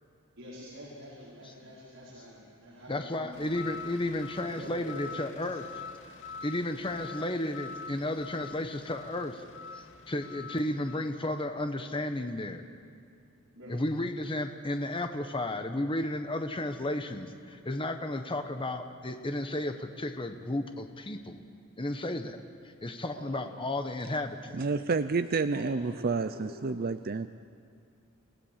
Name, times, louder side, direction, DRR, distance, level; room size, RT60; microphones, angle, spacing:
voice 1, 0.4-3.6 4.5-5.3 13.5-13.8 23.2-23.5 25.5-26.8, equal, 65° right, -7 dB, 5.5 m, -46 dB
voice 2, 2.9-5.8 6.4-9.4 9.7-12.7 13.7-21.4 21.8-24.6, left 1 dB, 25° left, 6 dB, 1.1 m, -33 dB
sound 1, 3.3-11.0, left 6 dB, 65° left, 2.2 m, -45 dB
voice 3, 24.5-27.3, right 4 dB, 45° right, 10 dB, 0.6 m, -29 dB
29.5 x 17.0 x 7.4 m, 2.4 s
head